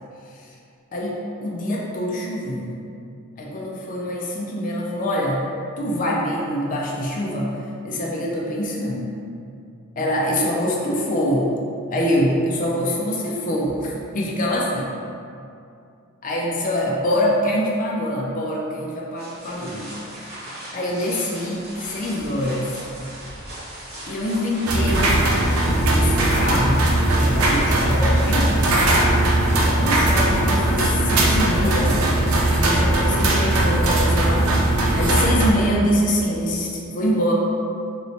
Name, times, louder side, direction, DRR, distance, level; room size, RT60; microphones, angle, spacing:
voice 1, 0.9-2.8 3.4-5.5 5.8-7.6 7.8-9.1 10.0-11.5 11.9-14.9 16.2-19.9 20.7-22.8 24.1-25.2 25.6-26.9 27.2-28.5 29.6-32.1 32.5-34.6 34.9-37.3, equal, 40° left, -3 dB, 0.4 m, -24 dB
sound 1, 19.2-31.1, right 1 dB, 50° right, 1.2 m, -38 dB
sound 2, 24.7-35.5, right 1 dB, 85° right, 0.5 m, -19 dB
3.1 x 3.0 x 2.8 m, 2.5 s
head